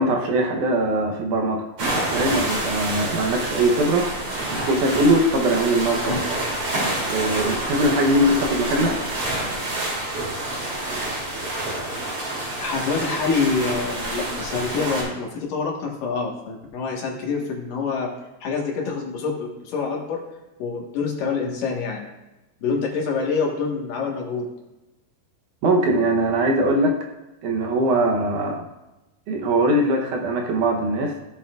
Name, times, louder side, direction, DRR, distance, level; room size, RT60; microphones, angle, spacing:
voice 1, 0.0-4.1 4.5-6.2 7.1-8.9 25.6-26.9 27.4-28.7 29.3-31.1, right 1 dB, 70° right, 1 dB, 2.2 m, -21 dB
sound 1, 1.8-15.0, right 1 dB, 45° right, 3.7 m, -27 dB
voice 2, 12.6-18.1 18.4-20.2 20.6-22.1 22.6-24.4, left 4 dB, 70° left, -1 dB, 3.1 m, -26 dB
16.5 x 7.0 x 2.4 m, 1.0 s
omnidirectional pair, 4.0 m